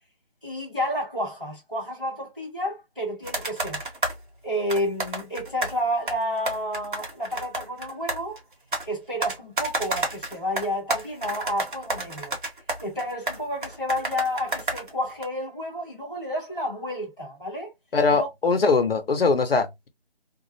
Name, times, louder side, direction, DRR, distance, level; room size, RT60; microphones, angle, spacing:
voice 1, 0.4-3.8 4.4-8.4 8.8-12.3 12.8-17.7 18.1-18.3, equal, 5° right, 0.7 m, -30 dB
sound 1, 3.2-4.2 4.7-5.8 6.1-8.9 9.2-15.2, right 2 dB, 55° right, 1.0 m, -30 dB
voice 2, 17.9-19.9, left 4 dB, 70° left, 0.8 m, -21 dB
2.4 x 2.0 x 2.6 m
figure-of-eight pair, 165°, 31 cm